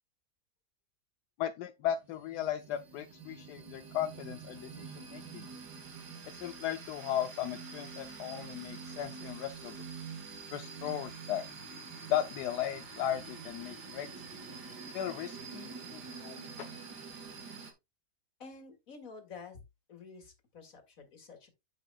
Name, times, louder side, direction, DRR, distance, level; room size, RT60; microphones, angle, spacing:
voice 1, 1.4-5.5 6.3-9.8 10.5-11.4 12.1-14.1 14.9-16.7, left 11 dB, 80° left, 1.2 m, -36 dB
sound 1, 1.9-17.7, right 5 dB, 75° right, 2.2 m, -46 dB
voice 2, 18.4-19.6 19.9-21.5, left 4 dB, 55° left, 2.4 m, -50 dB
9.2 x 7.4 x 2.3 m
omnidirectional pair, 1.8 m